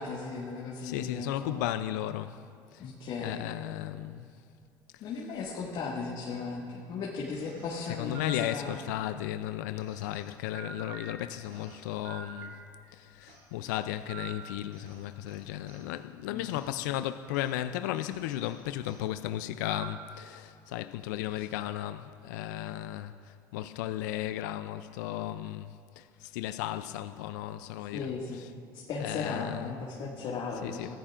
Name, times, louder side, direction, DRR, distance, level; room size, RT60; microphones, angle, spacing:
voice 1, 0.0-1.6 2.8-3.4 5.0-8.8 16.3-16.6 21.4-21.5 27.9-28.4 28.7-31.0, left 4 dB, 60° left, 1.9 m, -36 dB
voice 2, 0.8-2.4 2.7-2.9 3.2-4.3 8.0-12.6 12.9-28.5 29.0-29.7 30.6-31.0, left 13 dB, 85° left, 0.4 m, -35 dB
sound 1, 7.3-9.1 9.8-12.9 13.3-15.9 16.5-16.7 17.3-17.5 17.9-19.0 19.6-20.2, right 5 dB, 80° right, 3.0 m, -48 dB
22.5 x 15.0 x 2.5 m
supercardioid pair, 80°, 9 cm